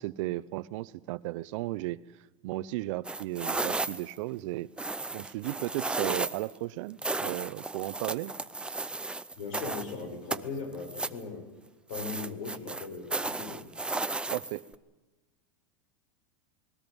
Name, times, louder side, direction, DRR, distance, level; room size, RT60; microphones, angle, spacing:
voice 1, 0.0-2.0 2.4-4.7 5.1-8.3 14.3-14.6, right 18 dB, 65° right, 0.8 m, -35 dB
sound 1, 3.0-4.2 4.8-6.5 7.0-9.9 10.3-11.2 11.9-14.7, right 2 dB, 5° right, 0.6 m, -34 dB
voice 2, 9.3-11.5 11.9-13.7, left 4 dB, 75° left, 7.3 m, -39 dB
29.0 x 20.0 x 5.4 m
supercardioid pair, 135°, 17 cm